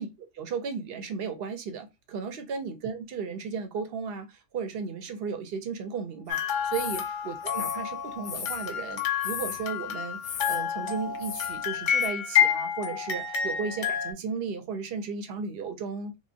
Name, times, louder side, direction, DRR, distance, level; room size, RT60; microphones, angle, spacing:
voice 1, 0.0-16.2, right 5 dB, 60° right, 0.7 m, -35 dB
sound 1, 6.3-14.1, left 8 dB, 55° left, 0.5 m, -29 dB
sound 2, 6.7-7.1 7.4-8.7 9.2-9.7 10.2-10.6 11.1-11.6 12.0-12.1, left 8 dB, 90° left, 1.0 m, -36 dB
3.0 x 2.2 x 2.5 m
omnidirectional pair, 1.3 m